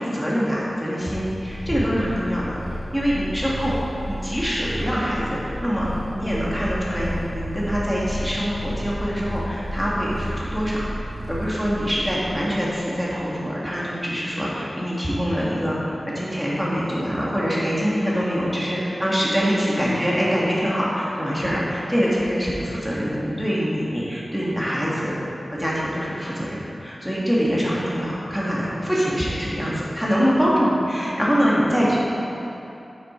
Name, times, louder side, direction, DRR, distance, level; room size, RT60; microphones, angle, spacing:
voice 1, 0.0-2.6 2.9-3.8 4.1-5.9 6.1-10.9 11.3-15.8 16.1-25.2 25.5-32.0, equal, ahead, -7 dB, 1.6 m, -24 dB
Purr, 1.1-12.4, equal, 60° right, 1.8 m, -32 dB
8.8 x 6.4 x 4.3 m, 2.9 s
wide cardioid pair, 70°, 0 cm